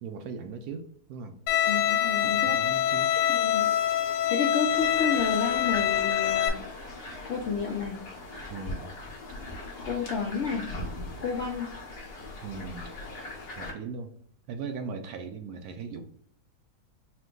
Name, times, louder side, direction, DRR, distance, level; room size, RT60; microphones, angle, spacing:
voice 1, 0.0-1.3 2.2-3.1 8.5-8.9 12.4-12.9 13.6-14.1 14.5-16.1, right 5 dB, 70° right, 6 dB, 1.0 m, -38 dB
Bowed string instrument, 1.5-6.5, left 11 dB, 90° left, 1.2 m, -25 dB
voice 2, 1.7-2.6 3.4-3.7 4.3-6.6 7.2-8.0 9.8-10.7 11.2-11.7, left 5 dB, 70° left, 0 dB, 0.6 m, -30 dB
sound 1, 4.7-13.7, left 2 dB, 45° left, 1.0 m, -40 dB
4.4 x 2.2 x 3.7 m, 0.64 s
omnidirectional pair, 1.7 m